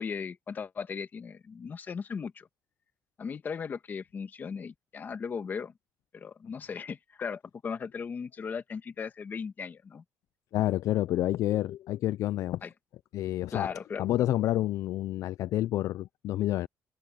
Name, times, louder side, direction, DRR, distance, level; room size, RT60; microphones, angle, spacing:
voice 1, 0.0-2.5 3.2-5.7 6.1-10.0 12.6-12.7 13.5-14.0, left 6 dB, 30° left, 1.3 m, -37 dB
voice 2, 10.5-12.6 13.1-16.7, left 14 dB, 60° left, 0.3 m, -29 dB
cardioid pair, 165°, 6 cm